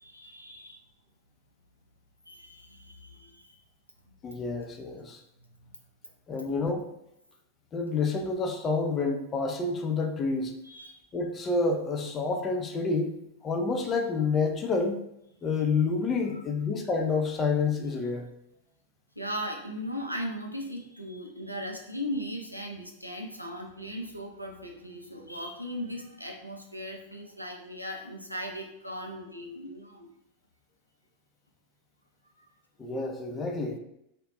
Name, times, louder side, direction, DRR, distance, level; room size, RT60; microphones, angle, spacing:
voice 1, 0.0-0.8 2.3-3.6 4.1-4.2 5.6-5.7 10.6-11.0 16.3-16.4 19.2-30.1 32.4-32.5, equal, 90° right, 1 dB, 0.4 m, -38 dB
voice 2, 4.2-5.2 6.3-6.9 7.7-10.5 11.1-13.2 13.4-15.0 15.4-18.2 32.8-33.8, left 4 dB, 25° left, 3 dB, 0.4 m, -28 dB
2.4 x 2.1 x 3.0 m, 0.80 s
figure-of-eight pair, 90°, 0 cm